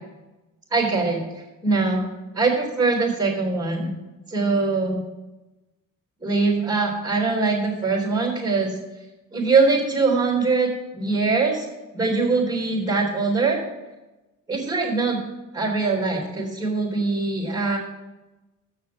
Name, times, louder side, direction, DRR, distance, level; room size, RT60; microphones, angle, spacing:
voice 1, 0.7-1.2 1.6-2.0 2.4-3.9 4.3-5.0 6.2-8.7 9.3-11.7 11.9-13.6 14.5-15.2 15.5-17.8, right 3 dB, 10° right, -6 dB, 3.5 m, -22 dB
7.7 x 6.5 x 7.5 m, 1.1 s
cardioid pair, 80°, 34 cm